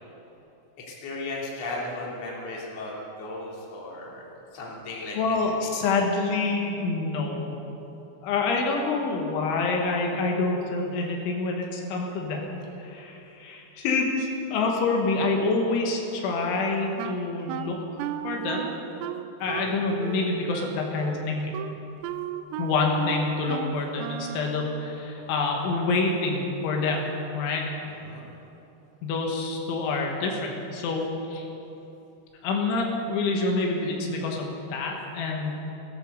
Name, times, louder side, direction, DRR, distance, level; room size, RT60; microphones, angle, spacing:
voice 1, 0.8-4.2 4.5-5.4 19.4-19.7 27.8-28.3, left 2 dB, 40° left, -4 dB, 3.2 m, -36 dB
voice 2, 5.2-7.6 8.2-12.6 12.8-18.7 19.4-21.5 22.6-27.1 27.4-27.7 29.0-31.5 32.4-35.7, left 3 dB, 85° left, 0 dB, 3.9 m, -27 dB
Wind instrument woodwind instrument, 17.0-24.5, right 10 dB, 85° right, 2.8 m, -35 dB
17.0 x 12.0 x 6.8 m, 3.0 s
omnidirectional pair, 5.3 m